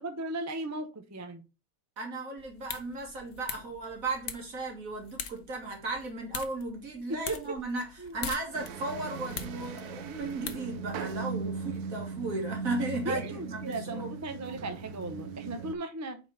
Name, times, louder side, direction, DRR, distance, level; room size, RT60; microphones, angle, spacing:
voice 1, 0.0-1.4 7.1-7.4 8.0-8.2 13.0-16.2, right 2 dB, 25° right, 0.4 m, -36 dB
voice 2, 2.0-14.1, right 2 dB, 60° right, 2.3 m, -36 dB
sound 1, 2.4-11.2, left 8 dB, 60° left, 1.1 m, -44 dB
sound 2, 8.5-15.8, right 5 dB, 85° right, 1.2 m, -38 dB
4.9 x 4.2 x 5.5 m
omnidirectional pair, 1.6 m